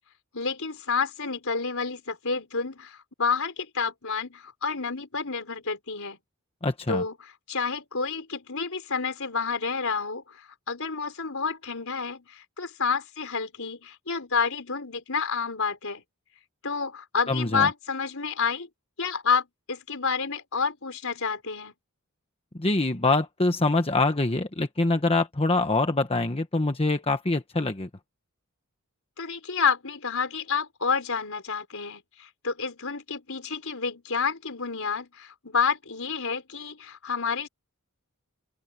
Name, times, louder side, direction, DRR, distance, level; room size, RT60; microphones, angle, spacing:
voice 1, 0.3-6.2 6.9-10.4 10.7-16.0 16.6-18.7 19.0-21.7 29.2-37.5, left 5 dB, 65° left, 5.2 m, -29 dB
voice 2, 6.6-7.0 17.3-17.7 22.5-27.9, left 2 dB, 25° left, 1.2 m, -24 dB
head